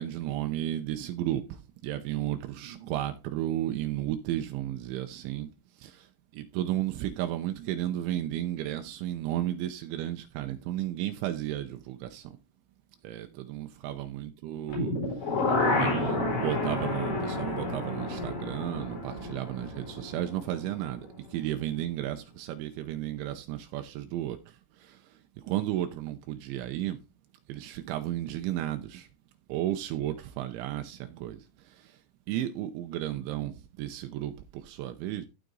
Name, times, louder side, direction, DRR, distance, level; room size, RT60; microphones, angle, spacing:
voice 1, 0.0-5.5 5.8-6.1 6.3-12.4 13.0-14.9 15.7-25.0 25.4-27.0 27.5-29.1 29.5-32.0 32.3-35.3, right 13 dB, 80° right, 3.1 m, -33 dB
sound 1, 14.7-20.7 21.0-21.1, left 2 dB, 60° left, 6.4 m, -30 dB
14.5 x 5.1 x 4.0 m
omnidirectional pair, 5.5 m